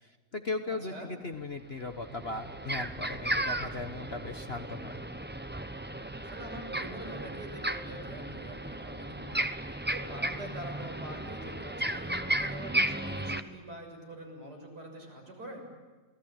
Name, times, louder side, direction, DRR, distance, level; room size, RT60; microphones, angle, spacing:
voice 1, 0.0-4.9, left 3 dB, 40° left, 6 dB, 1.2 m, -38 dB
sound 1, 1.3-1.4 1.8-13.4, right 1 dB, 15° right, 0.3 m, -35 dB
voice 2, 6.2-9.6 9.9-15.7, right 1 dB, 60° right, 1 dB, 7.6 m, -45 dB
28.0 x 20.0 x 8.9 m, 1.3 s
omnidirectional pair, 2.0 m